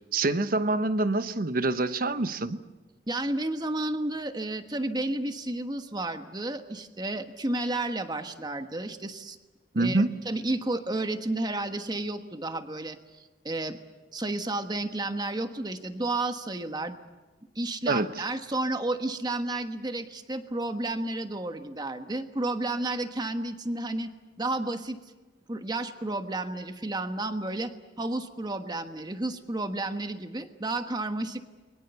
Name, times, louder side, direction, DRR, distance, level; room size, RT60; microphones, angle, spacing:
voice 1, 0.1-2.6 9.7-10.1 17.9-18.3, right 2 dB, 55° right, 11 dB, 1.1 m, -26 dB
voice 2, 3.1-9.4 9.7-13.8 14.1-17.0 17.5-24.1 24.4-25.0 25.5-31.4, right 2 dB, 25° right, 8 dB, 1.3 m, -32 dB
29.0 x 22.5 x 6.9 m, 1.2 s
head